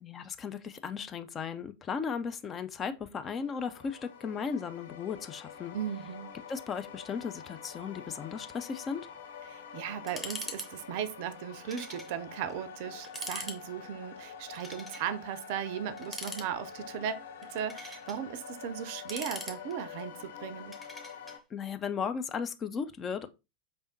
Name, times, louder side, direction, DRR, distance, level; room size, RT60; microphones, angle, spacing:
voice 1, 0.0-5.8 6.5-9.1 21.5-23.3, left 6 dB, 25° left, 0.4 m, -36 dB
sound 1, 3.2-21.4, left 7 dB, 60° left, 0.7 m, -47 dB
voice 2, 5.7-6.3 9.5-20.8, right 9 dB, 50° right, 0.4 m, -37 dB
sound 2, 10.1-10.7 10.9-11.0 11.7-12.1 12.5-12.6 13.0-13.6 14.5-15.1 16.0-16.8 17.4-18.2 18.8-20.0 20.7-21.4, left 1 dB, 5° left, 0.8 m, -42 dB
5.0 x 3.4 x 2.6 m
figure-of-eight pair, 90°, 0 cm